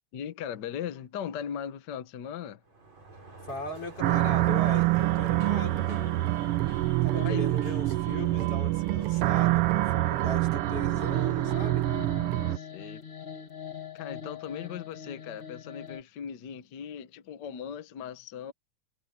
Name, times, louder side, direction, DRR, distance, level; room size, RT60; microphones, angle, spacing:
voice 1, 0.1-2.6 7.1-7.4 12.5-13.0 13.9-18.5, left 8 dB, 75° left, 1.0 m, -38 dB
Sliding door, 2.6-10.4, right 2 dB, 65° right, 8.6 m, -49 dB
voice 2, 3.4-6.0 7.0-11.9, left 2 dB, 50° left, 6.1 m, -39 dB
sound 1, 4.0-12.6, right 17 dB, 80° right, 1.3 m, -26 dB
sound 2, 4.1-16.0, left 7 dB, 25° left, 1.2 m, -45 dB
omnidirectional pair, 3.3 m